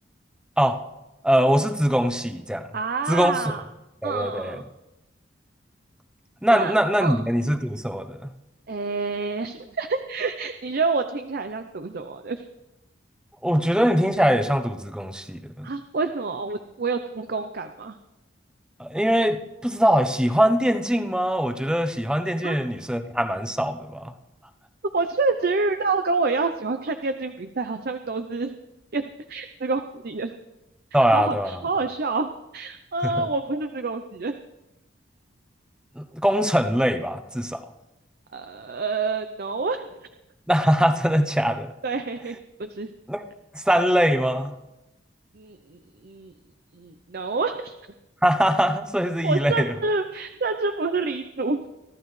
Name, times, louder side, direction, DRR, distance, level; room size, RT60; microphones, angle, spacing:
voice 1, 1.2-2.7 3.1-3.4 4.0-4.6 6.4-8.3 13.4-15.7 18.8-24.1 30.9-31.6 33.2-33.3 36.0-37.6 40.5-41.7 43.1-43.2 43.5-44.5 48.2-49.7, equal, 5° right, 7 dB, 0.8 m, -22 dB
voice 2, 2.7-3.6 4.0-4.6 6.5-6.7 7.0-7.2 8.7-12.4 15.6-18.0 22.4-22.6 24.9-28.5 28.9-29.0 29.3-30.3 31.1-34.4 38.3-40.0 41.8-42.9 45.3-46.3 46.7-47.7 49.2-51.6, right 3 dB, 55° right, 9 dB, 0.7 m, -28 dB
23.5 x 13.5 x 3.2 m, 0.97 s
head